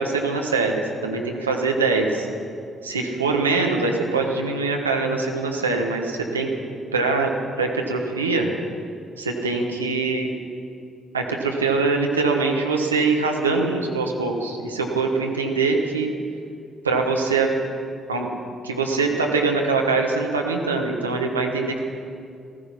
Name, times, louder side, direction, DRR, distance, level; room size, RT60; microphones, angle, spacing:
voice 1, 0.0-2.3 2.8-6.5 6.9-7.3 7.6-8.5 9.2-10.3 11.1-16.1 16.8-17.5 18.1-18.3 18.6-21.8, right 4 dB, 90° right, 2 dB, 1.2 m, -23 dB
15.0 x 14.5 x 5.8 m, 2.4 s
figure-of-eight pair, 45°, 0 cm